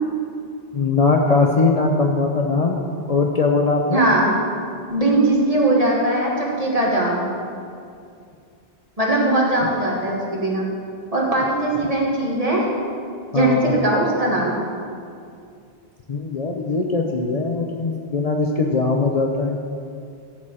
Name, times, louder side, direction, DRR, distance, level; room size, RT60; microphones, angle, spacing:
voice 1, 0.7-2.8 3.1-4.1 13.3-13.7 16.1-19.6, left 3 dB, 40° left, 1 dB, 0.7 m, -20 dB
voice 2, 3.9-4.3 4.9-7.3 9.0-10.7 11.1-12.6 13.3-14.6, right 1 dB, 35° right, -4 dB, 2.1 m, -20 dB
13.5 x 4.8 x 7.5 m, 2.4 s
omnidirectional pair, 1.1 m